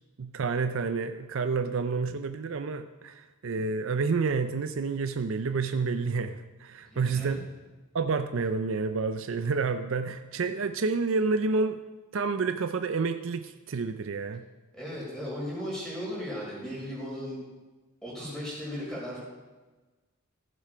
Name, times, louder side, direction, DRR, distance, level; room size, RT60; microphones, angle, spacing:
voice 1, 0.2-7.4 7.9-11.8 12.1-14.4, right 4 dB, 60° right, 9 dB, 0.5 m, -29 dB
voice 2, 6.8-7.4 14.7-17.4 18.0-19.2, equal, 5° left, -6 dB, 4.3 m, -36 dB
15.5 x 7.5 x 5.0 m, 1.2 s
head